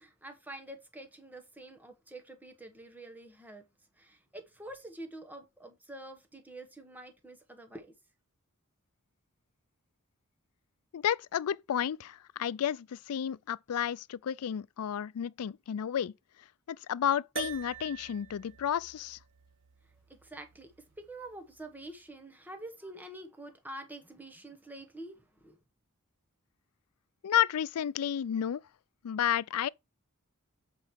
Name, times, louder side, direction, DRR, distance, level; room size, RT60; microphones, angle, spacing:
voice 1, 0.0-3.6 4.0-7.9 20.2-25.6, right 1 dB, 10° right, 1.1 m, -47 dB
voice 2, 10.9-16.1 16.7-19.2 27.2-28.6 29.0-29.7, left 9 dB, 85° left, 0.4 m, -31 dB
sound 1, 17.4-21.9, right 8 dB, 55° right, 1.4 m, -46 dB
7.7 x 4.8 x 4.5 m
head